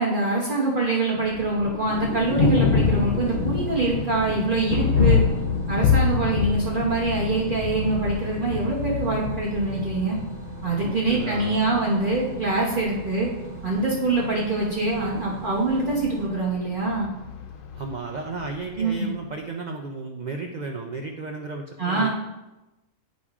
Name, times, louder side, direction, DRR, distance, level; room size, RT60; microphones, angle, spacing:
voice 1, 0.0-5.2 5.7-10.2 10.6-13.3 13.6-17.1 18.8-19.1 21.8-22.1, right 3 dB, 40° right, -4 dB, 1.1 m, -24 dB
Thunder, 1.2-19.1, left 5 dB, 60° left, 0.6 m, -27 dB
sound 1, 1.9-16.3, right 8 dB, 65° right, 1.2 m, -41 dB
voice 2, 10.8-11.6 17.7-22.1, right 4 dB, 85° right, 3 dB, 0.4 m, -34 dB
9.8 x 5.2 x 2.4 m, 1.0 s
omnidirectional pair, 1.4 m